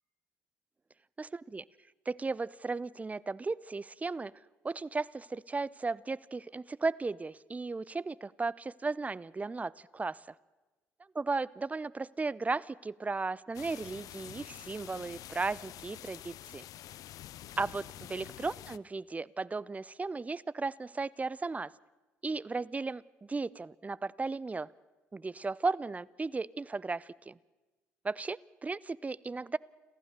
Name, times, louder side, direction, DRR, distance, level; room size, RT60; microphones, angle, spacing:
voice 1, 1.2-1.6 2.1-4.3 4.6-10.3 11.1-16.6 17.6-21.7 22.2-24.7 25.1-27.4 28.0-29.6, right 3 dB, 20° right, 22 dB, 0.6 m, -35 dB
sound 1, 13.5-18.8, left 13 dB, 65° left, 0.6 m, -47 dB
27.5 x 14.5 x 6.7 m, 1.2 s
hypercardioid pair, 55°, 7 cm